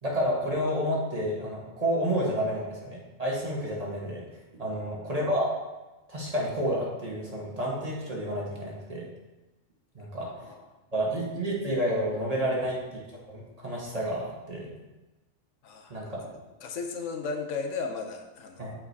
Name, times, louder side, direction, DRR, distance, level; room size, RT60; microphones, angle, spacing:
voice 1, 0.0-4.3 4.6-5.5 6.1-9.1 9.9-10.3 10.9-12.8 13.3-14.7 15.9-16.3 18.6-18.7, equal, 30° right, -4 dB, 1.2 m, -30 dB
voice 2, 4.7-5.0 10.2-10.6 12.4-12.6 15.6-15.9 16.6-18.7, left 4 dB, 75° left, 4 dB, 1.0 m, -36 dB
7.3 x 4.8 x 2.7 m, 1.1 s
omnidirectional pair, 1.3 m